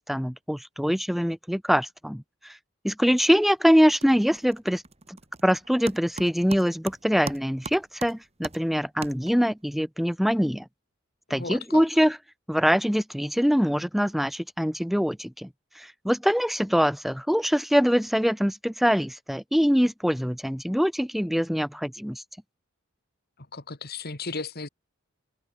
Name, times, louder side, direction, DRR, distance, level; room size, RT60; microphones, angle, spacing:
voice 1, 0.0-2.2 2.8-4.8 5.1-5.2 5.4-10.6 11.3-12.2 12.5-15.5 15.8-22.2, equal, ahead, 0.6 m, -23 dB
sound 1, 3.1-3.5 3.8-9.6, right 3 dB, 30° right, 6.0 m, -41 dB
voice 2, 11.3-11.8 23.5-24.7, left 3 dB, 50° left, 3.0 m, -35 dB
head